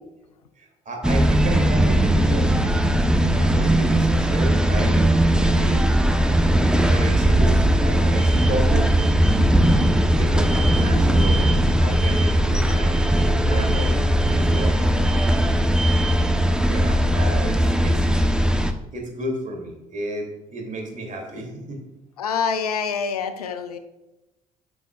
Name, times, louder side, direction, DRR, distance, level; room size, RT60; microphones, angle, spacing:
voice 1, 0.6-2.5 3.4-5.9 6.8-8.9 10.2-14.8 16.6-18.1 18.9-21.8, right 1 dB, 45° right, 1 dB, 2.8 m, -32 dB
sound 1, 1.0-18.7, right 1 dB, 5° right, 0.9 m, -19 dB
voice 2, 22.2-23.8, left 6 dB, 90° left, 10 dB, 0.6 m, -26 dB
12.0 x 6.2 x 2.4 m, 1.0 s
hypercardioid pair, 50°, 19 cm